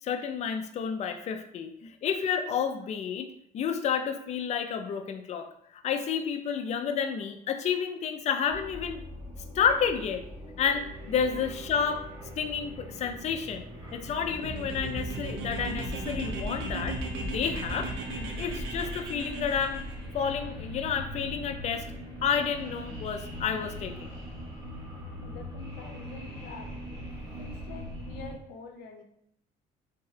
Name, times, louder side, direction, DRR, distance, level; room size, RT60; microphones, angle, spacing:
voice 1, 0.0-1.7 2.0-3.3 3.5-5.5 5.8-9.0 9.5-10.2 10.6-12.0 12.4-17.9 18.2-19.8 20.1-21.9 22.2-24.1, left 7 dB, 40° left, 7 dB, 0.4 m, -30 dB
sound 1, 8.5-28.4, equal, 25° right, 1.2 m, -41 dB
sound 2, 13.9-20.0, right 1 dB, 75° right, 0.7 m, -36 dB
voice 2, 25.2-26.7 27.4-29.0, left 3 dB, 85° left, 4 dB, 0.6 m, -46 dB
3.6 x 2.2 x 3.2 m, 0.74 s
cardioid pair, 110°, 17 cm